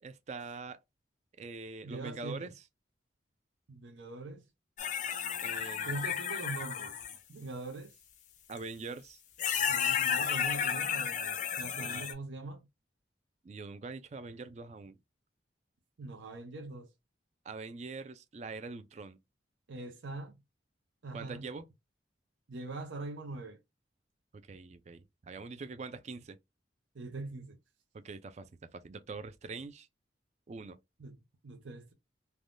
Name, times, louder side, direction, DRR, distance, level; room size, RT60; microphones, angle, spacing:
voice 1, 0.0-0.8 1.4-2.5 5.4-6.0 8.5-9.2 11.8-12.1 13.4-15.0 17.5-19.2 21.1-21.7 24.5-26.4 28.0-29.9 30.5-30.8, right 4 dB, 35° right, 0.3 m, -43 dB
voice 2, 1.8-2.5 3.7-4.4 5.9-6.9 7.3-7.9 9.7-12.7 16.0-16.9 19.7-20.4 21.0-21.5 22.5-23.6 26.9-27.6 31.0-31.2 31.4-31.9, right 3 dB, 85° right, 0.6 m, -42 dB
sound 1, 4.8-7.2 8.6-8.7 9.4-12.1, left 8 dB, 40° left, 0.4 m, -32 dB
3.3 x 2.2 x 2.4 m
head